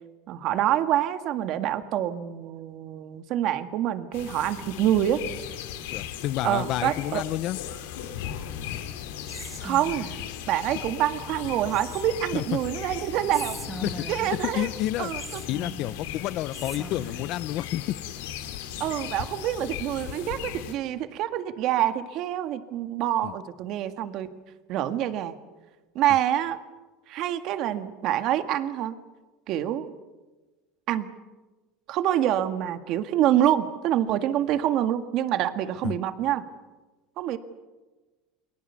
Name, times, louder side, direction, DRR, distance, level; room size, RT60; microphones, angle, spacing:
voice 1, 0.3-5.2 6.4-7.2 9.6-10.1 10.5-13.6 14.1-14.7 15.0-15.4 18.8-24.3 24.7-25.3 26.0-26.6 27.1-29.0 29.5-29.9 30.9-31.1 31.9-36.4 37.2-37.4, right 11 dB, 55° right, 9 dB, 1.8 m, -26 dB
sound 1, 4.1-20.7, left 10 dB, 85° left, 2.8 m, -37 dB
voice 2, 5.9-7.6 12.3-12.6 13.8-14.0 14.4-15.1 15.5-18.0 23.2-23.3 35.8-36.0, left 15 dB, 55° left, 19 dB, 0.7 m, -30 dB
Whispering, 9.2-10.3 11.7-12.4 13.3-14.5 15.2-16.1 16.5-17.4, right 2 dB, 10° right, 1.9 m, -41 dB
29.5 x 22.0 x 7.0 m, 1.2 s
supercardioid pair, 130°, 0 cm